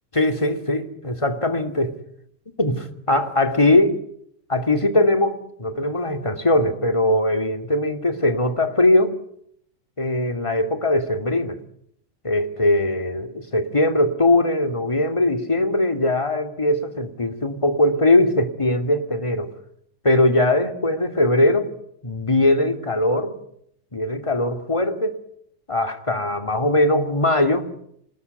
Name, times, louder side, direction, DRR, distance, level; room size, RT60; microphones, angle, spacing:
voice 1, 0.1-2.0 2.6-4.0 4.5-9.2 10.0-11.6 12.2-19.5 20.0-21.7 22.0-23.4 23.9-25.2 25.7-27.7, left 1 dB, 10° left, 2.0 m, -20 dB
27.5 x 20.0 x 9.6 m
omnidirectional pair, 3.7 m